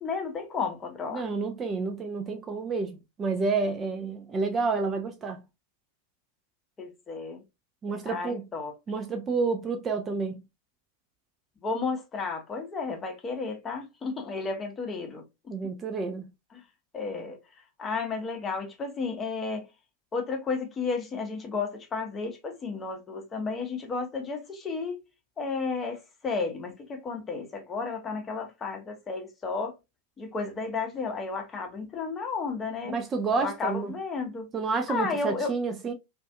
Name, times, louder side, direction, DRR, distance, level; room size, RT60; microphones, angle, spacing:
voice 1, 0.0-1.3 6.8-7.4 8.1-8.7 11.6-15.5 16.5-16.6 16.9-17.4 17.8-19.7 20.1-24.9 25.4-29.8 30.2-33.0 33.4-34.5 34.9-35.5, left 4 dB, 20° left, 0.7 m, -33 dB
voice 2, 1.1-5.4 7.8-8.4 8.9-10.4 15.5-16.3 32.9-33.9 34.5-35.9, right 4 dB, 20° right, 0.4 m, -29 dB
2.4 x 2.4 x 2.2 m
figure-of-eight pair, 90°, 0 cm